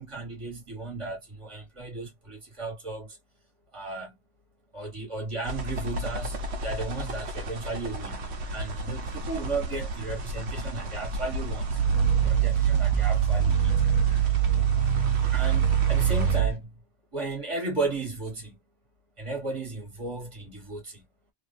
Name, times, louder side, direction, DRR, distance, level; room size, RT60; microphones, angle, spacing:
voice 1, 0.0-3.2 3.7-4.2 4.7-11.8 12.2-13.7 15.3-16.8 17.1-18.6 19.2-21.0, right 3 dB, 30° right, 1.4 m, -35 dB
sound 1, 5.4-16.4, equal, 85° right, 1.1 m, -34 dB
Growling, 11.6-16.6, right 9 dB, 60° left, 1.2 m, -23 dB
2.9 x 2.4 x 2.5 m
omnidirectional pair, 1.1 m